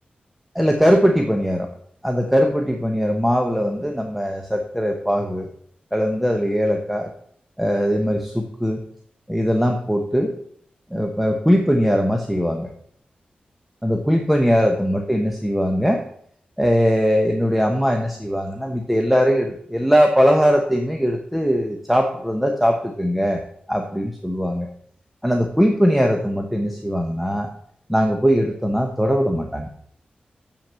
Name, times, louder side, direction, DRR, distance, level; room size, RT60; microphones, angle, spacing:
voice 1, 0.5-1.7 2.0-5.5 5.9-7.1 7.6-8.8 9.3-10.3 10.9-12.7 13.8-16.0 16.6-23.4 23.7-24.7 25.2-27.5 27.9-29.7, equal, 5° right, 2 dB, 1.0 m, -20 dB
7.2 x 5.9 x 7.4 m, 0.65 s
wide cardioid pair, 95°, 3 cm